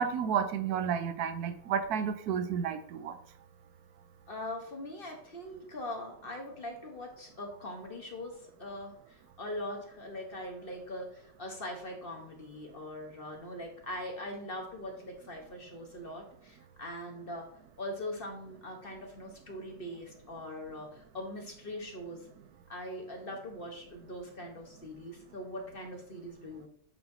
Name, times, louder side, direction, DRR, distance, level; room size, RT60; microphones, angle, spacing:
voice 1, 0.0-3.1, right 7 dB, 80° right, 9 dB, 1.1 m, -31 dB
voice 2, 4.3-17.5 17.8-22.3 22.7-26.7, left 1 dB, 40° left, 2 dB, 1.1 m, -41 dB
7.7 x 4.5 x 2.7 m, 0.62 s
omnidirectional pair, 1.7 m